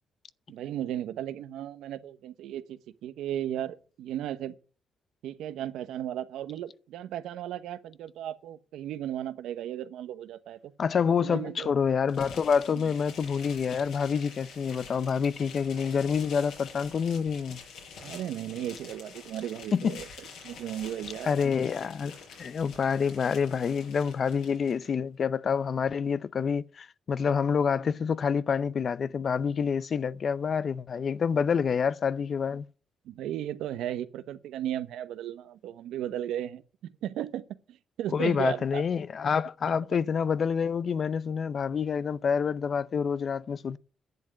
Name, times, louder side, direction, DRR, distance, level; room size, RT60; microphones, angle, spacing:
voice 1, 0.5-4.5 5.2-10.7 11.2-11.7 12.7-12.9 18.0-20.1 20.4-21.5 33.0-38.8, right 11 dB, 85° right, 1.0 m, -35 dB
voice 2, 10.8-17.6 19.7-20.0 21.2-22.1 22.4-32.7 38.1-43.8, left 6 dB, 50° left, 0.6 m, -27 dB
sound 1, 12.1-24.9, left 5 dB, 85° left, 6.4 m, -47 dB
10.5 x 7.6 x 9.5 m
cardioid pair, 90°, 0 cm